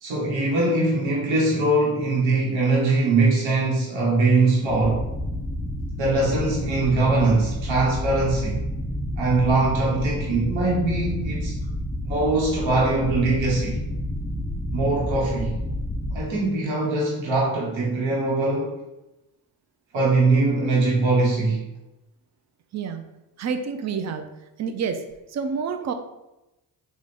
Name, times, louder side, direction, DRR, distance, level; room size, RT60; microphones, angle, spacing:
voice 1, 0.0-5.0 6.0-8.6 9.2-11.6 12.0-13.8 14.7-15.6 16.1-18.7 19.9-21.6, right 2 dB, 75° right, -4 dB, 1.1 m, -22 dB
sound 1, 4.7-16.2, left 1 dB, 15° left, 0.4 m, -30 dB
voice 2, 22.7-23.0 23.4-24.3 24.6-25.0 25.3-25.9, right 6 dB, 35° right, 7 dB, 0.5 m, -28 dB
3.4 x 2.4 x 4.1 m, 0.95 s
cardioid pair, 65°, 47 cm